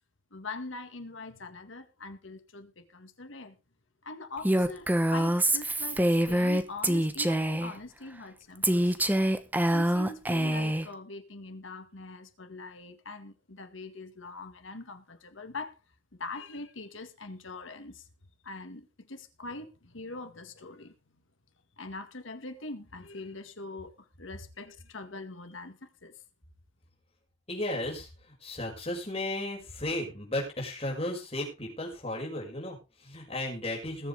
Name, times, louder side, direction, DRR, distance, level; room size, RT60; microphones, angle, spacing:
voice 1, 0.3-3.6 4.0-9.0 9.7-15.7 16.2-18.1 18.4-20.9 21.8-26.1, left 3 dB, 80° left, 1.9 m, -43 dB
Female speech woman speaking, 4.4-7.7 8.6-10.9, right 1 dB, 10° right, 1.0 m, -25 dB
voice 2, 27.5-34.1, left 1 dB, 30° left, 6.1 m, -35 dB
20.5 x 8.1 x 3.5 m
head